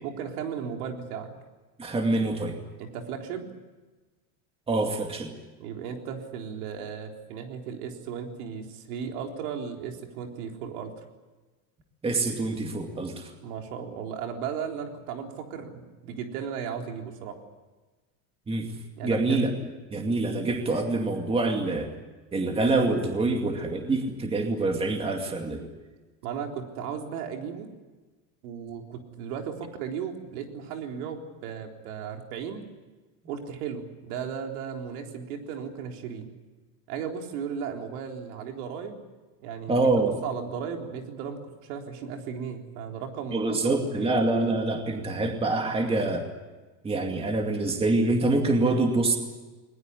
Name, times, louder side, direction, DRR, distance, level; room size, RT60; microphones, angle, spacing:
voice 1, 0.0-1.3 2.8-3.5 5.6-11.0 13.4-17.4 19.0-19.4 23.3-23.4 26.2-27.7 28.4-32.6 33.3-36.3 36.9-39.0 39.4-39.9 40.2-44.2, right 7 dB, 80° right, 3 dB, 4.0 m, -36 dB
voice 2, 1.8-2.6 4.7-5.3 12.0-13.3 18.5-18.7 19.0-19.5 19.9-21.9 22.3-25.7 39.7-40.2 43.3-46.3 46.8-49.2, right 2 dB, 15° right, 4 dB, 2.3 m, -25 dB
20.5 x 20.5 x 9.7 m, 1.2 s
cardioid pair, 160°, 44 cm